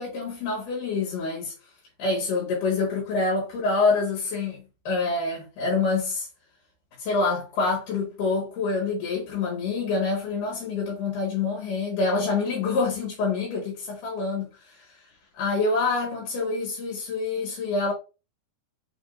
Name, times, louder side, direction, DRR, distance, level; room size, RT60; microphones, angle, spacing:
voice 1, 0.0-1.5 2.0-6.3 7.0-15.0 15.3-17.9, left 3 dB, 70° left, 2.9 m, -26 dB
5.9 x 3.6 x 2.4 m
omnidirectional pair, 4.1 m